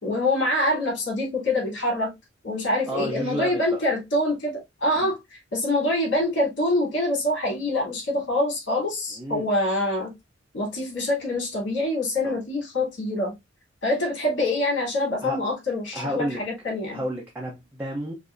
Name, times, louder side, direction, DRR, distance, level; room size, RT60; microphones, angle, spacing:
voice 1, 0.0-2.1 2.4-4.5 4.8-10.1 10.5-13.3 13.8-17.0, left 1 dB, 65° left, 3.0 m, -25 dB
voice 2, 2.9-3.8 4.9-5.1 9.1-9.5 12.2-12.4 15.2-15.4 15.9-16.4 16.9-18.1, equal, 10° right, 0.8 m, -31 dB
5.4 x 2.7 x 2.5 m
head